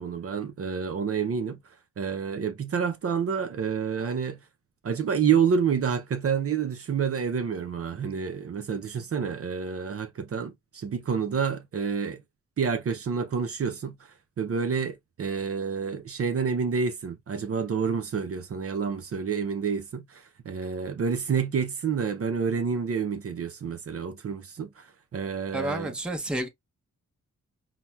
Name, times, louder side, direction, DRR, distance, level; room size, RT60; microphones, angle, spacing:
voice 1, 0.0-1.6 2.0-4.4 4.8-12.2 12.6-14.0 14.4-25.9, right 6 dB, 50° right, 0.5 m, -28 dB
voice 2, 25.5-26.5, right 1 dB, 5° right, 0.6 m, -30 dB
5.7 x 2.0 x 2.3 m
wide cardioid pair, 165°, 30 cm